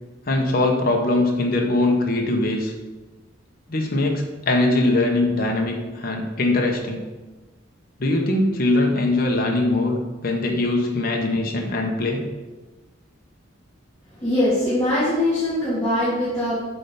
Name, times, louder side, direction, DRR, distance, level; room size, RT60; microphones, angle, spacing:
voice 1, 0.3-2.7 3.7-7.0 8.0-10.0 10.2-12.2, left 2 dB, 50° left, 1 dB, 0.9 m, -21 dB
voice 2, 14.1-16.6, left 1 dB, 15° left, -11 dB, 2.2 m, -22 dB
8.2 x 3.4 x 5.4 m, 1.2 s
head